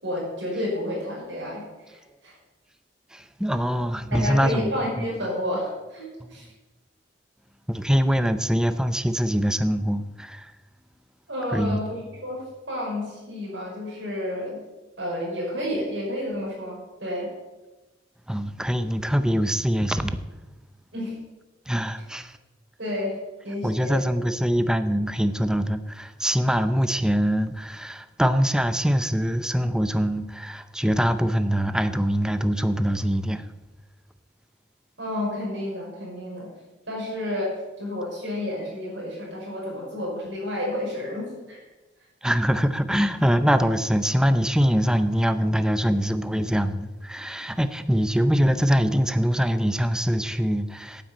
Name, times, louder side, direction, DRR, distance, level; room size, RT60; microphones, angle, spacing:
voice 1, 0.0-2.3 4.1-6.5 11.3-14.6 15.0-17.3 20.9-21.1 22.8-23.2 23.4-24.0 35.0-36.5 36.9-41.6, left 1 dB, 85° right, -3 dB, 5.5 m, -30 dB
voice 2, 3.1-4.7 5.0-5.1 6.2-6.3 7.7-10.5 11.5-11.8 18.3-20.2 21.7-22.4 23.6-33.4 42.2-51.0, equal, 5° right, 11 dB, 0.6 m, -23 dB
9.2 x 9.2 x 8.5 m, 1.1 s
head